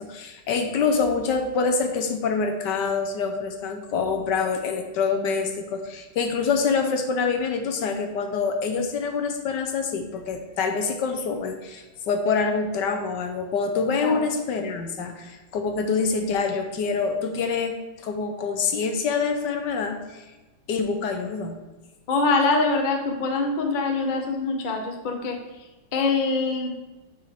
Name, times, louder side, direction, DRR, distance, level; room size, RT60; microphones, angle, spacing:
voice 1, 0.0-20.2 20.7-21.6, left 5 dB, 70° left, 5 dB, 1.3 m, -26 dB
voice 2, 22.1-25.4 25.9-26.7, left 3 dB, 35° left, 2 dB, 0.8 m, -24 dB
10.0 x 5.3 x 3.5 m, 1.1 s
omnidirectional pair, 2.1 m